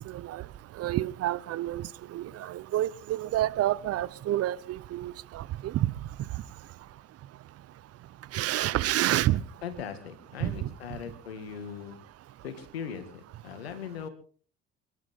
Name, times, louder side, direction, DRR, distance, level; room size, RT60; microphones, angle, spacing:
voice 1, 0.1-0.4 0.7-5.9 8.3-9.4 10.4-10.7, right 14 dB, 50° right, 1.0 m, -29 dB
voice 2, 9.6-12.0 12.4-14.1, left 7 dB, 85° left, 2.4 m, -39 dB
29.0 x 12.5 x 3.8 m
hypercardioid pair, 60°, 30 cm